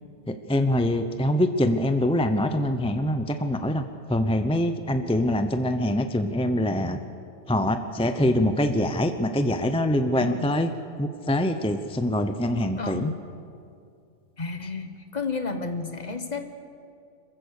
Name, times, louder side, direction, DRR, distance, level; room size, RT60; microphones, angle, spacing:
voice 1, 0.3-7.0 7.5-10.7 11.0-13.1, left 1 dB, 5° left, 8 dB, 0.5 m, -24 dB
voice 2, 10.1-10.5 12.8-13.2 14.4-16.4, left 4 dB, 35° left, 7 dB, 1.4 m, -32 dB
27.0 x 15.0 x 6.6 m, 2.4 s
omnidirectional pair, 1.3 m